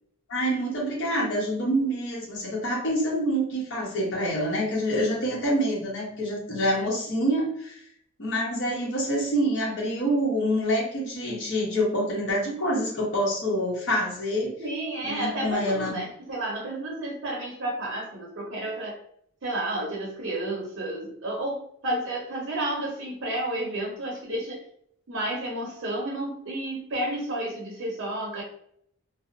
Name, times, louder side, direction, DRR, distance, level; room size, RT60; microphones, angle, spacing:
voice 1, 0.3-7.8 8.2-14.5 15.0-16.0, equal, 60° left, -3 dB, 0.9 m, -26 dB
voice 2, 14.6-19.0 19.4-24.6 25.1-28.4, right 1 dB, 60° right, -2 dB, 0.6 m, -31 dB
2.6 x 2.0 x 2.6 m, 0.68 s
head